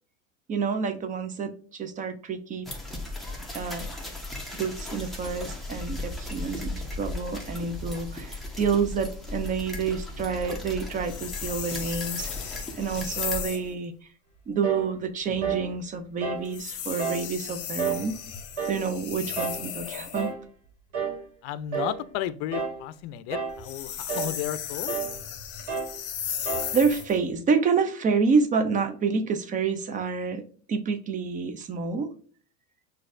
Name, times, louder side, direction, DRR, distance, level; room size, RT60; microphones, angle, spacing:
voice 1, 0.5-2.7 3.5-3.9 4.5-13.9 14.5-18.2 18.7-20.3 26.7-30.4 30.7-32.1, right 5 dB, 25° right, 0.4 m, -28 dB
sound 1, 2.6-13.4, left 2 dB, ahead, 0.8 m, -37 dB
sound 2, 11.0-13.7 16.4-20.3 23.5-27.2, left 8 dB, 45° left, 0.9 m, -35 dB
sound 3, 14.6-14.9 15.4-15.7 16.2-16.5 17.0-17.3 17.8-18.1 18.6-18.9 19.4-19.7 20.1-20.4 20.9-21.2 21.7-22.0 22.5-22.8 23.3-23.6 24.1-24.4 24.9-25.2 25.7-26.0 26.5-26.8, right 6 dB, 70° right, 1.4 m, -30 dB
voice 2, 21.4-24.9, left 12 dB, 65° left, 0.5 m, -33 dB
6.1 x 2.6 x 2.5 m
supercardioid pair, 125°, 34 cm